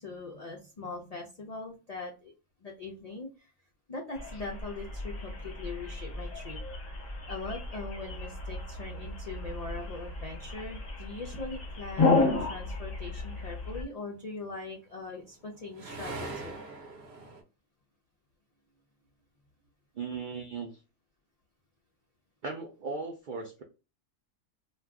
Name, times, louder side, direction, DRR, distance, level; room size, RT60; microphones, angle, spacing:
voice 1, 0.0-2.3 2.6-3.5 3.9-6.6 7.3-16.6, left 3 dB, 65° left, 0 dB, 0.3 m, -41 dB
sound 1, 4.1-13.8, left 3 dB, 35° left, 0.8 m, -33 dB
sound 2, 14.4-17.4, right 2 dB, 55° right, 0.9 m, -42 dB
voice 2, 20.0-20.7 22.4-23.6, right 4 dB, 75° right, 2 dB, 0.4 m, -37 dB
2.5 x 2.2 x 3.4 m, 0.30 s
omnidirectional pair, 1.4 m